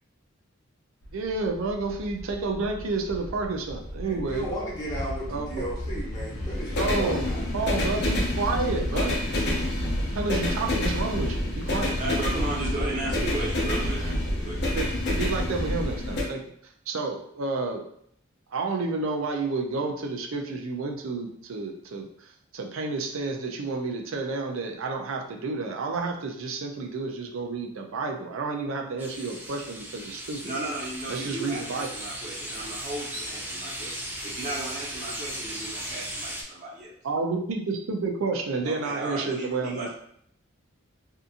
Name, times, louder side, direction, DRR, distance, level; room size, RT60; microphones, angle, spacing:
sound 1, 1.0-16.2, left 1 dB, 60° left, 0.7 m, -29 dB
voice 1, 1.1-4.5 5.3-5.5 6.8-7.3 7.5-9.1 10.1-12.0 14.8-14.9 15.1-16.4 16.9-17.8 18.5-22.1 22.5-30.4 31.1-31.9 37.0-39.9, right 3 dB, 90° right, 2 dB, 0.5 m, -30 dB
voice 2, 4.0-7.4, equal, 20° left, -7 dB, 1.0 m, -35 dB
voice 3, 12.0-14.6 30.4-36.9 38.6-39.9, right 1 dB, 40° right, -6 dB, 0.9 m, -35 dB
sound 2, 29.0-36.4, right 1 dB, 10° right, 0.3 m, -37 dB
2.7 x 2.4 x 2.5 m, 0.68 s
head